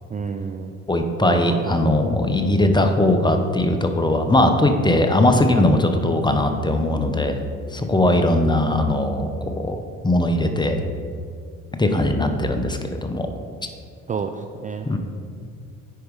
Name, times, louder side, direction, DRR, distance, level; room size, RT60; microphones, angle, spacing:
voice 1, 0.1-0.8 1.2-1.9 8.1-8.5 14.1-14.9, right 5 dB, 20° right, 6 dB, 0.4 m, -30 dB
voice 2, 0.9-7.4 7.7-10.8 11.8-13.3 14.9-15.0, left 1 dB, 10° left, 6 dB, 0.9 m, -20 dB
9.3 x 4.8 x 4.8 m, 2.2 s
hypercardioid pair, 65°, 36 cm